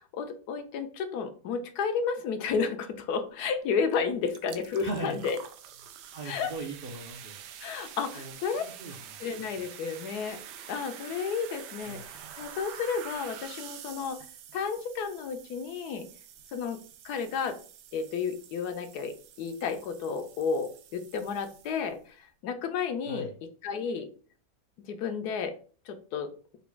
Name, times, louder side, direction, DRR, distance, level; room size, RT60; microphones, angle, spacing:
voice 1, 0.0-5.4 6.2-6.5 7.6-8.6 9.2-10.4 10.7-14.2 14.5-16.1 16.5-16.8 17.0-17.6 17.9-23.3 23.6-24.1 24.9-25.5 25.9-26.3, left 6 dB, 75° left, 8 dB, 1.1 m, -32 dB
sound 1, 3.9-4.0 4.3-22.0, right 9 dB, 85° right, 1.2 m, -47 dB
voice 2, 4.8-5.2 6.1-7.4 8.1-9.2 11.8-12.0 23.1-23.3, right 2 dB, 60° right, 0 dB, 0.6 m, -39 dB
4.0 x 2.3 x 4.5 m, 0.39 s
omnidirectional pair, 1.8 m